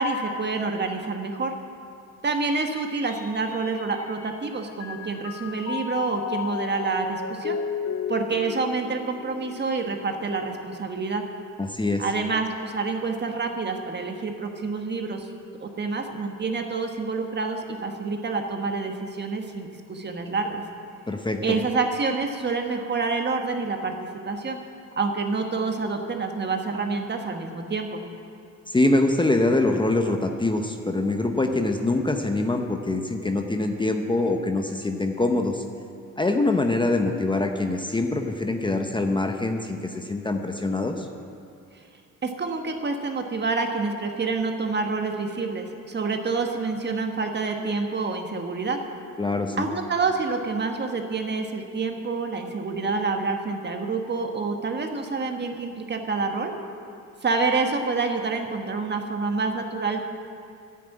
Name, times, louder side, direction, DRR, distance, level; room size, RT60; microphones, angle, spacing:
voice 1, 0.0-1.5 2.2-7.6 8.1-11.2 12.0-15.3 15.6-20.6 21.4-24.6 25.0-28.0 42.2-48.8 49.6-56.5 57.2-60.0, right 4 dB, 35° right, 4 dB, 1.4 m, -27 dB
Mallet percussion, 3.1-4.4 4.8-10.2, left 7 dB, 50° left, 0.9 m, -34 dB
voice 2, 11.6-12.0 21.1-21.4 28.7-35.6 36.2-41.1 49.2-49.6, left 2 dB, 15° left, 4 dB, 0.8 m, -24 dB
11.0 x 8.6 x 8.5 m, 2.5 s
cardioid pair, 90°, 30 cm